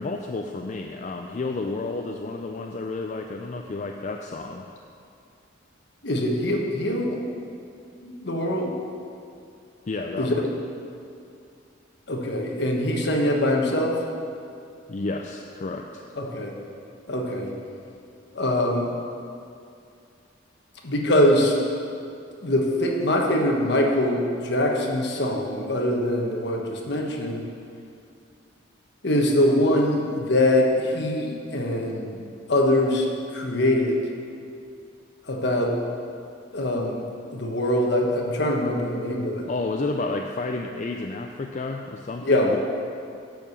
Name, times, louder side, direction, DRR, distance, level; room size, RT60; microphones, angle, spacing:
voice 1, 0.0-4.7 9.9-10.4 14.9-16.0 39.5-42.6, left 3 dB, 40° left, 2 dB, 0.4 m, -31 dB
voice 2, 6.0-7.2 8.0-8.7 10.2-10.4 12.1-14.0 16.2-16.5 17.1-17.5 18.3-18.9 20.8-21.6 22.4-27.5 29.0-32.2 32.5-33.1 33.3-34.0 35.3-35.7 36.5-37.0 37.3-39.4 42.2-42.6, left 1 dB, 60° left, 0 dB, 1.2 m, -23 dB
10.5 x 4.7 x 7.1 m, 2.5 s
head